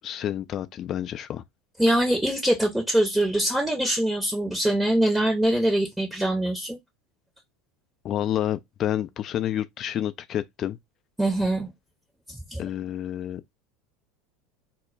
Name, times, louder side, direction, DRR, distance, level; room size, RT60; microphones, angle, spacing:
voice 1, 0.0-1.4 8.0-10.8 12.6-13.5, left 11 dB, 40° left, 0.3 m, -29 dB
voice 2, 1.8-6.8 11.2-11.7 12.3-12.6, right 1 dB, 5° right, 0.7 m, -23 dB
2.1 x 2.1 x 3.7 m
figure-of-eight pair, 75°, 0 cm